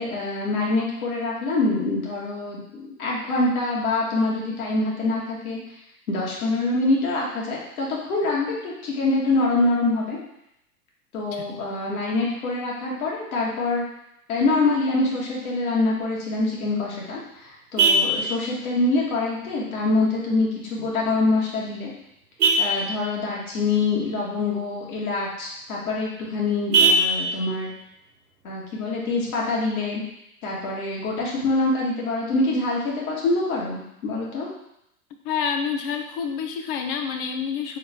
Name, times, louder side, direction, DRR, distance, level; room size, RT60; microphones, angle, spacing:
voice 1, 0.0-5.6 6.1-10.2 11.1-13.8 14.3-21.9 22.6-27.7 28.4-30.0 30.4-34.5, left 2 dB, 65° left, -4 dB, 1.7 m, -25 dB
Vehicle horn car horn honking, 16.5-29.5, right 2 dB, 85° right, 1.0 m, -28 dB
voice 2, 35.2-37.8, left 6 dB, 40° left, 5 dB, 0.6 m, -28 dB
3.8 x 3.7 x 3.5 m, 0.81 s
hypercardioid pair, 105°, 46 cm